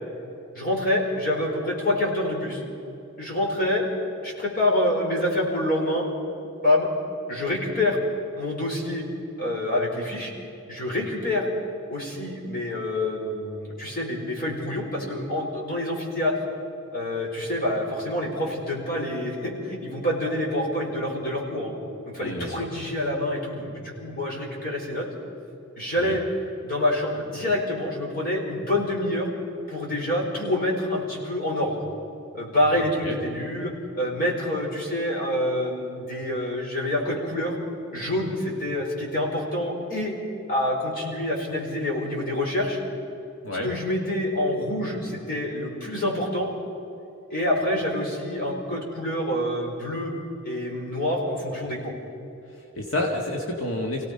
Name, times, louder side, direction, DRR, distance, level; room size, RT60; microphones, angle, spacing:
voice 1, 0.5-2.6 3.2-3.8 4.2-6.1 6.6-6.9 7.3-8.0 8.3-9.1 9.4-10.3 10.7-11.5 11.9-16.3 16.9-21.7 22.0-25.1 25.7-26.2 26.6-29.3 29.7-31.8 32.3-37.6 37.9-40.1 40.5-42.8 43.6-46.5 47.3-50.1 50.4-51.9, left 1 dB, 45° left, -2 dB, 4.9 m, -27 dB
voice 2, 22.2-22.6 26.0-26.1 33.0-33.2 43.4-43.7 52.5-54.1, left 1 dB, 70° left, 0 dB, 2.0 m, -29 dB
27.5 x 17.5 x 5.6 m, 2.8 s
head